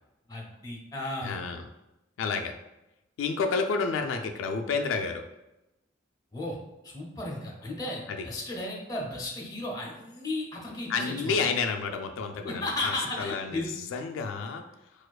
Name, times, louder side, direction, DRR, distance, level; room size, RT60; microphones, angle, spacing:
voice 1, 0.3-1.4 6.3-6.6 6.8-11.4 12.4-13.7, left 2 dB, 20° left, -2 dB, 0.7 m, -34 dB
voice 2, 1.2-1.7 2.2-2.5 3.2-5.2 8.1-8.3 10.9-14.6, left 5 dB, 85° left, 5 dB, 0.3 m, -30 dB
4.3 x 2.4 x 2.3 m, 0.94 s
head